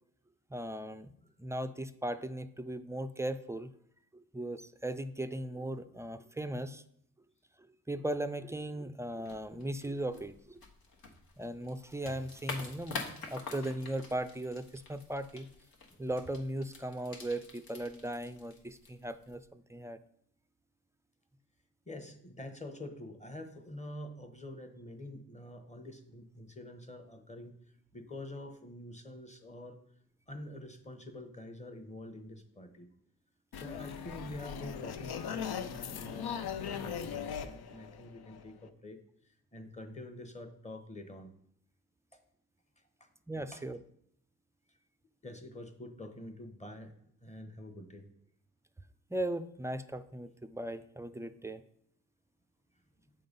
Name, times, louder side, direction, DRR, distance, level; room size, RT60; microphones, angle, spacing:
voice 1, 0.5-1.1 1.4-3.7 4.1-6.8 7.9-10.6 11.4-15.5 16.0-20.0 43.3-43.8 49.1-51.6, right 1 dB, 10° right, 11 dB, 0.3 m, -38 dB
sound 1, 9.2-19.5, left 4 dB, 70° left, 1.2 m, -47 dB
voice 2, 21.9-27.6 27.9-29.8 30.3-32.9 33.5-39.0 39.2-41.3 43.0-43.1 43.5-43.6 45.2-47.0 47.2-48.0 53.0-53.1, left 1 dB, 20° left, 6 dB, 1.0 m, -46 dB
sound 2, 33.5-38.7, left 8 dB, 90° left, 0.6 m, -39 dB
7.8 x 3.9 x 5.3 m, 0.68 s
cardioid pair, 90°, 37 cm